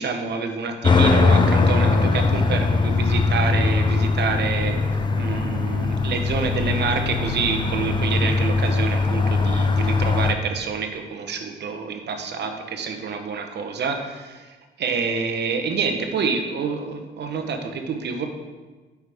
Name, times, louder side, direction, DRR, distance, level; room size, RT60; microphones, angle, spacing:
voice 1, 0.0-4.7 5.2-18.3, right 5 dB, 60° right, 5 dB, 0.9 m, -27 dB
sound 1, 0.8-10.3, left 3 dB, 25° left, 0.4 m, -21 dB
8.1 x 4.9 x 3.4 m, 1.3 s
cardioid pair, 90°, 20 cm